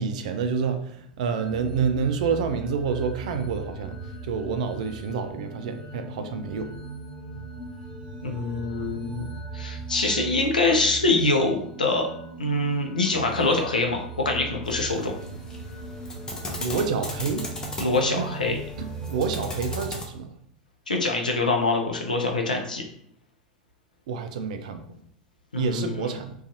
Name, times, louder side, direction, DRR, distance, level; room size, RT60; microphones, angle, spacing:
voice 1, 0.0-6.7 16.6-17.5 18.2-18.3 18.8-20.3 24.1-24.8 25.6-26.3, right 5 dB, 60° right, 8 dB, 0.3 m, -28 dB
sound 1, 1.3-19.9, right 3 dB, 20° right, 0.8 m, -39 dB
voice 2, 8.2-12.1 12.4-15.1 17.8-18.6 20.9-22.8 25.5-26.1, left 2 dB, 85° left, 2 dB, 0.5 m, -24 dB
sound 2, 14.6-20.0, left 1 dB, 15° left, 0.6 m, -38 dB
2.5 x 2.3 x 2.6 m, 0.68 s
figure-of-eight pair, 85°, 4 cm